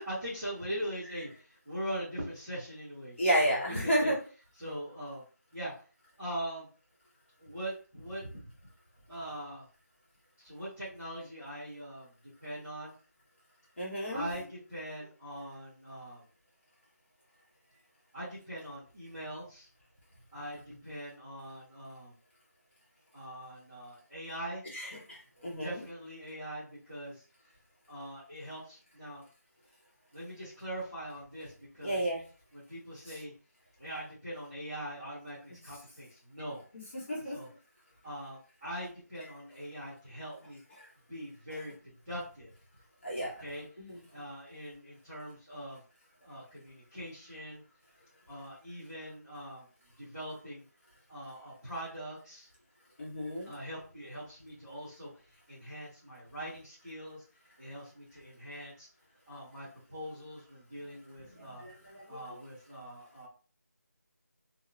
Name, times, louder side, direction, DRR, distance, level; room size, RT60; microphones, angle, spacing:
voice 1, 0.0-4.1 4.6-5.2 5.5-5.7 6.2-6.7 7.4-8.4 9.1-9.6 10.4-12.1 12.4-12.9 14.1-16.2 18.1-19.7 20.3-22.1 23.1-24.6 25.4-27.2 27.9-29.2 30.1-32.0 32.5-33.3 33.8-36.6 37.1-37.5 38.0-40.6 41.1-42.5 43.4-43.6 44.1-45.8 46.2-47.6 48.3-49.6 50.0-50.6 51.1-52.5 53.4-55.1 55.5-57.2 57.6-58.9 59.3-61.6 62.1-63.3, equal, 5° right, -17 dB, 0.5 m, -42 dB
voice 2, 3.2-4.2 13.8-14.3 24.7-25.8 31.8-32.2 36.7-37.4 43.0-43.3 43.8-44.0 53.0-53.5 61.3-62.2, equal, 45° left, -4 dB, 1.2 m, -32 dB
2.7 x 2.1 x 2.5 m, 0.38 s
figure-of-eight pair, 170°, 9 cm